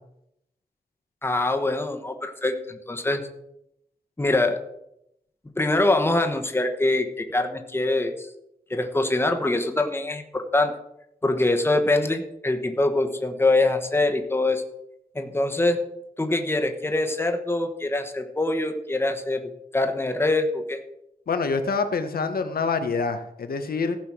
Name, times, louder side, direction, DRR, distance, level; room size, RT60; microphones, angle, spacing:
voice 1, 1.2-3.2 4.2-4.6 5.6-8.3 8.7-10.7 11.2-14.6 15.1-15.8 16.2-19.4 19.7-20.8, left 2 dB, 15° left, 5 dB, 1.1 m, -24 dB
voice 2, 21.3-24.0, left 4 dB, 85° left, 8 dB, 1.1 m, -26 dB
15.0 x 5.8 x 6.1 m, 0.81 s
wide cardioid pair, 145°, 15 cm